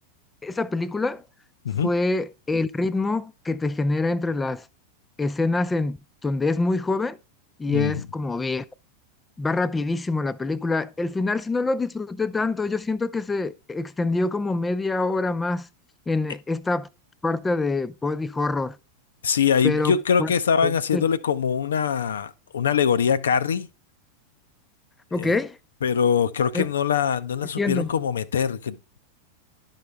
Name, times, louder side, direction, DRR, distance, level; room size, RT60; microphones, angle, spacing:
voice 1, 0.4-1.2 1.8-4.7 5.2-6.0 6.2-7.2 7.6-8.6 9.4-15.7 16.1-16.9 17.2-18.8 19.6-20.3 20.6-21.0 25.1-25.6 26.5-26.7 27.6-27.9, left 3 dB, 10° left, 0.4 m, -25 dB
voice 2, 7.7-8.0 19.2-23.7 25.1-25.4 25.8-29.0, left 7 dB, 70° left, 0.5 m, -23 dB
11.5 x 5.6 x 3.4 m
figure-of-eight pair, 90°, 0 cm